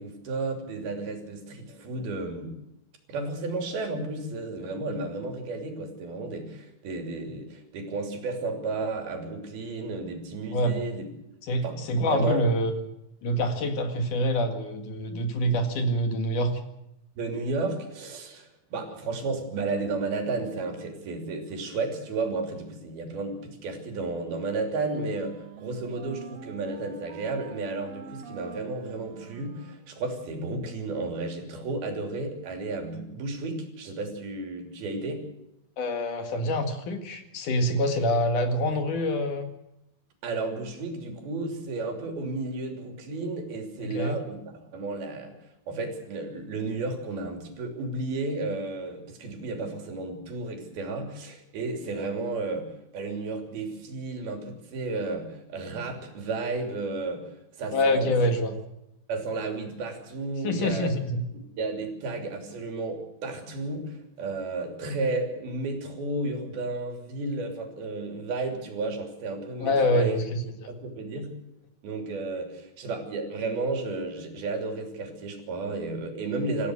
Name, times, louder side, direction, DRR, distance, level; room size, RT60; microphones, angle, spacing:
voice 1, 0.0-2.6 3.1-11.1 11.6-12.4 17.2-35.2 40.2-45.4 45.7-58.2 59.1-60.9 61.3-70.2 70.7-71.3 71.8-76.7, right 3 dB, 85° right, 4 dB, 5.0 m, -33 dB
voice 2, 11.5-12.8 13.2-16.5 35.8-39.5 43.8-44.2 57.7-58.6 60.4-61.2 69.6-70.7, left 1 dB, 60° left, 6 dB, 3.3 m, -26 dB
Wind instrument woodwind instrument, 24.4-30.5, right 6 dB, 50° right, 2.4 m, -46 dB
27.0 x 15.5 x 6.5 m, 0.86 s
omnidirectional pair, 4.2 m